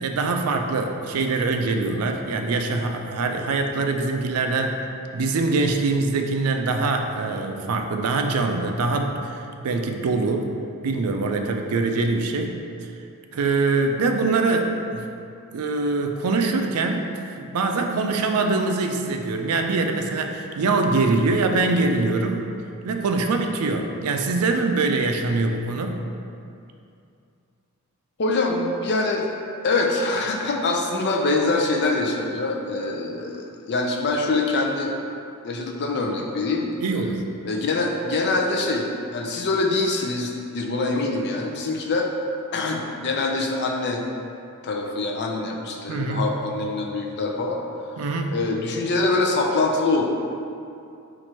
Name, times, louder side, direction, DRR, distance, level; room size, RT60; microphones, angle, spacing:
voice 1, 0.0-4.8 5.1-10.5 10.8-12.5 12.8-12.9 13.3-15.0 15.5-17.1 17.4-22.4 22.8-26.0 36.8-37.2 45.9-46.3 48.0-48.3, right 3 dB, 80° right, 4 dB, 0.4 m, -23 dB
voice 2, 28.2-29.3 29.6-34.9 35.4-36.7 37.4-38.9 39.1-42.1 42.5-44.0 44.6-47.6 48.3-50.0, left 3 dB, 50° left, 1 dB, 0.5 m, -24 dB
4.4 x 2.5 x 4.3 m, 2.5 s
head